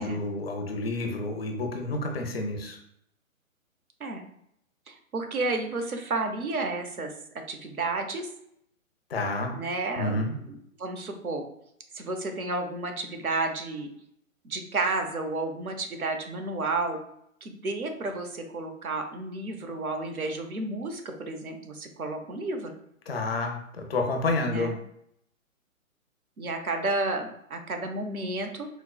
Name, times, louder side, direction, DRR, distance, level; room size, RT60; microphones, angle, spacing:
voice 1, 0.0-2.8 9.1-9.6 10.0-10.3 23.1-24.7, left 2 dB, 45° left, 3 dB, 0.6 m, -29 dB
voice 2, 4.9-7.1 7.5-8.3 9.5-11.4 11.9-13.9 14.4-17.0 17.4-22.7 24.4-24.8 26.4-28.7, right 2 dB, 90° right, 5 dB, 0.8 m, -31 dB
4.3 x 2.1 x 2.3 m, 0.73 s
figure-of-eight pair, 130°, 42 cm